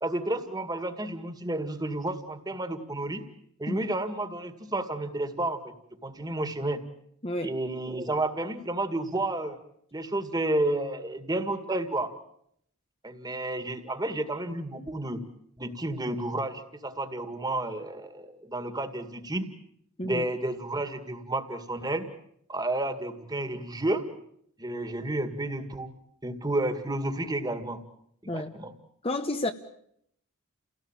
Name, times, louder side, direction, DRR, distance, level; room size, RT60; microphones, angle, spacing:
voice 1, 0.0-3.2 3.6-5.7 6.0-6.8 7.4-9.6 9.9-12.1 13.0-15.2 15.6-19.5 20.0-22.0 22.5-24.0 24.6-25.9 26.2-27.8 28.2-28.7, right 1 dB, 20° right, 2.1 m, -31 dB
voice 2, 7.2-7.5 20.0-20.2 28.3-28.5 29.0-29.5, left 1 dB, 25° left, 1.0 m, -30 dB
30.0 x 18.0 x 9.0 m
head